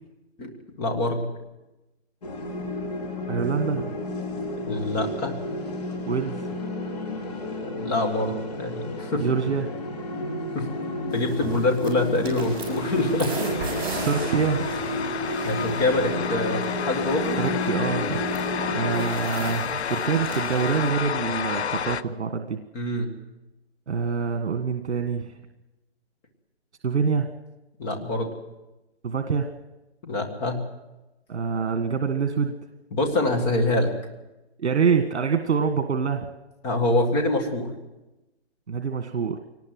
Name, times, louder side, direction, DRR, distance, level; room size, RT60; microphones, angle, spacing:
voice 1, 0.8-1.2 4.7-5.3 7.7-9.2 10.5-10.7 11.1-13.3 15.4-17.4 22.7-23.1 27.8-28.3 30.0-30.6 32.9-33.9 36.6-37.7, left 2 dB, 10° left, 3 dB, 1.8 m, -25 dB
sound 1, 2.2-19.0, left 1 dB, 35° left, 4.2 m, -31 dB
voice 2, 3.3-3.9 6.1-6.5 9.2-9.7 14.0-14.7 17.4-18.2 18.7-22.6 23.9-25.4 26.8-27.3 29.0-29.5 31.3-32.5 34.6-36.3 38.7-39.4, right 5 dB, 75° right, 6 dB, 1.8 m, -25 dB
sound 2, 11.1-20.9, right 3 dB, 20° right, 5.7 m, -37 dB
sound 3, 11.9-22.0, left 7 dB, 75° left, 1.0 m, -31 dB
23.5 x 19.0 x 7.8 m, 1.0 s
hypercardioid pair, 175°, 34 cm